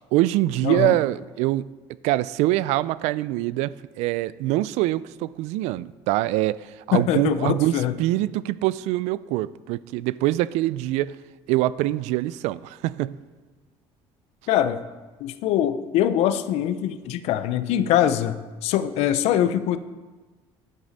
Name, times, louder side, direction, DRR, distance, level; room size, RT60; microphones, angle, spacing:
voice 1, 0.0-1.7 2.0-11.2 11.5-13.2, right 16 dB, 90° right, 19 dB, 0.4 m, -24 dB
voice 2, 0.6-1.0 6.9-7.9 14.5-14.8 15.2-19.8, left 11 dB, 70° left, 13 dB, 0.6 m, -23 dB
11.0 x 10.0 x 4.1 m, 1.3 s
cardioid pair, 165°, 11 cm